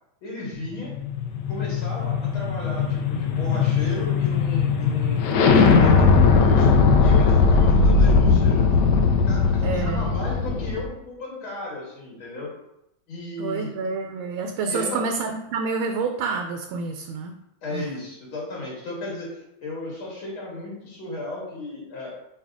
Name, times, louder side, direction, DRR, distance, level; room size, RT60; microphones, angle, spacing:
voice 1, 0.2-0.9 1.5-8.6 9.3-12.5 13.1-13.9 14.7-15.0 17.6-22.1, left 2 dB, 90° left, -3 dB, 2.8 m, -34 dB
sound 1, 0.6-10.8, left 4 dB, 70° left, 1.1 m, -19 dB
voice 2, 9.6-10.1 13.4-17.3 17.7-17.8, right 4 dB, 85° right, 4 dB, 1.4 m, -28 dB
5.6 x 4.8 x 3.6 m, 0.85 s
omnidirectional pair, 2.2 m